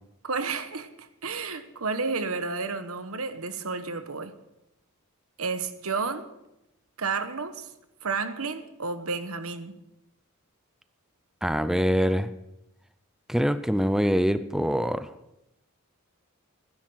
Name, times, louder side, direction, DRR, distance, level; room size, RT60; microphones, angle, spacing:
voice 1, 0.2-4.3 5.4-6.3 7.0-7.7 8.0-9.8, right 4 dB, 85° right, 10 dB, 1.2 m, -31 dB
voice 2, 11.4-12.3 13.3-15.1, equal, ahead, 12 dB, 0.5 m, -24 dB
16.0 x 10.5 x 6.5 m, 0.89 s
head